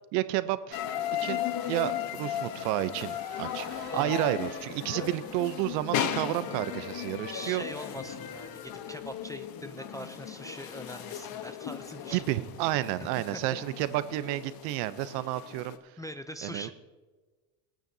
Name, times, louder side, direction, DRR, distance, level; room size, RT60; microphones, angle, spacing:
voice 1, 0.1-0.8 1.2-7.6 12.1-15.7 16.4-16.7, right 15 dB, 75° right, 14 dB, 0.8 m, -31 dB
sound 1, 0.7-15.8, left 10 dB, 45° left, 1.1 m, -36 dB
sound 2, 3.0-10.3 10.6-10.7 11.3-13.2 13.4-13.5 13.7-14.0 14.5-14.6, right 6 dB, 55° right, 2.3 m, -54 dB
voice 2, 3.8-4.3 5.0-5.1 7.3-12.2 13.2-13.6 16.0-16.7, equal, 10° left, 8 dB, 0.4 m, -42 dB
22.0 x 9.0 x 2.8 m, 1.3 s
supercardioid pair, 95°, 49 cm